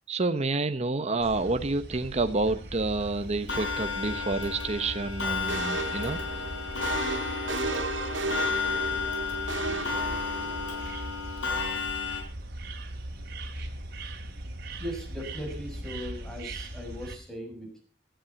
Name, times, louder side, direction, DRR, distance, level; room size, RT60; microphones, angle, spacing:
voice 1, 0.1-6.2, right 3 dB, 35° right, 9 dB, 1.0 m, -29 dB
sound 1, 1.2-17.2, right 1 dB, 60° right, 3.4 m, -40 dB
Clock, 3.5-12.2, left 5 dB, 85° left, 5.6 m, -32 dB
sound 2, 5.5-10.8, right 3 dB, 85° right, 2.7 m, -34 dB
voice 2, 14.8-17.8, equal, 5° left, 2 dB, 6.9 m, -38 dB
17.0 x 13.0 x 5.8 m, 0.39 s
head